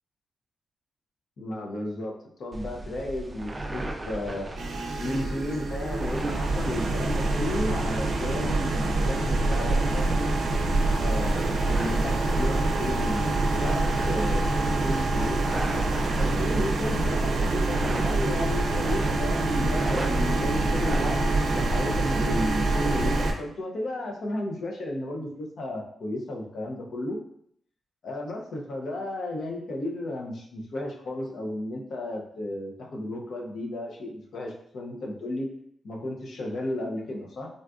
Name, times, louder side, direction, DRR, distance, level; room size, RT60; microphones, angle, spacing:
voice 1, 1.4-4.5 5.0-10.3 11.0-15.8 16.2-21.2 21.5-27.2 28.0-35.5 35.8-37.5, left 1 dB, 65° left, -1 dB, 0.6 m, -33 dB
sound 1, 2.5-21.1, right 1 dB, 20° right, 0.3 m, -37 dB
sound 2, 4.6-23.3, right 2 dB, 85° right, 0.4 m, -26 dB
Guitar, 11.6-18.2, equal, 50° left, 1.5 m, -44 dB
3.8 x 2.4 x 2.3 m, 0.68 s
wide cardioid pair, 145°, 0 cm